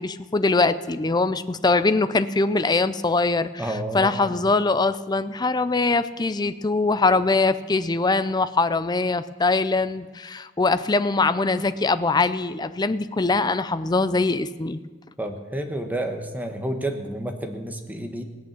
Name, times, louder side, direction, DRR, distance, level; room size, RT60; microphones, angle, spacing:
voice 1, 0.0-3.6 3.9-14.8, left 3 dB, 20° left, 12 dB, 0.5 m, -22 dB
voice 2, 3.6-4.4 15.2-18.2, right 1 dB, 10° right, 4 dB, 1.2 m, -30 dB
17.5 x 8.6 x 7.4 m, 1.4 s
head